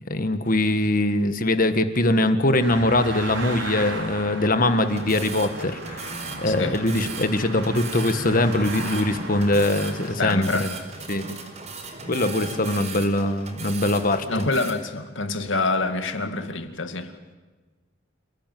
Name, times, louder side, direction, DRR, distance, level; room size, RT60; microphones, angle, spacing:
voice 1, 0.1-10.7 11.1-11.4 12.1-14.2, left 1 dB, 45° left, 9 dB, 1.7 m, -22 dB
sound 1, 2.6-10.1, right 2 dB, 75° right, 5.1 m, -36 dB
sound 2, 4.8-14.7, right 3 dB, 35° right, 4.6 m, -37 dB
voice 2, 6.5-6.8 10.2-10.7 14.3-17.1, left 3 dB, 75° left, 7 dB, 2.2 m, -26 dB
28.5 x 17.5 x 9.3 m, 1.3 s
head